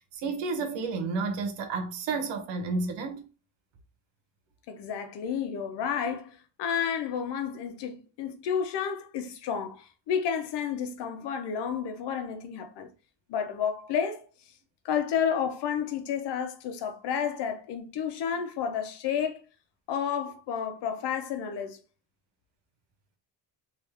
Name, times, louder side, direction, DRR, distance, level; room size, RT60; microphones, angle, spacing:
voice 1, 0.0-3.3, right 4 dB, 85° right, 1.0 m, -31 dB
voice 2, 4.7-12.9 13.3-14.2 14.8-19.4 19.9-21.8, left 7 dB, 70° left, 0.8 m, -31 dB
3.3 x 2.7 x 3.4 m
cardioid pair, 100°, 43 cm